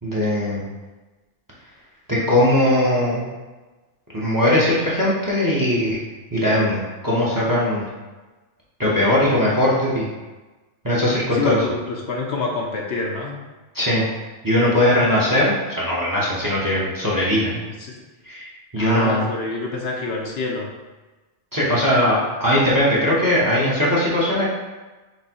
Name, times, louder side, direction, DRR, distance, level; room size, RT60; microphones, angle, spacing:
voice 1, 0.0-0.6 2.1-3.3 4.1-6.0 6.3-7.8 8.8-10.1 10.8-11.6 13.7-14.0 14.4-17.6 18.2-19.2 21.5-24.5, left 1 dB, 20° right, -6 dB, 0.8 m, -20 dB
voice 2, 11.3-13.3 17.8-18.0 18.8-20.7, left 3 dB, 65° left, -1 dB, 0.8 m, -26 dB
6.0 x 2.7 x 2.8 m, 1.2 s
omnidirectional pair, 1.3 m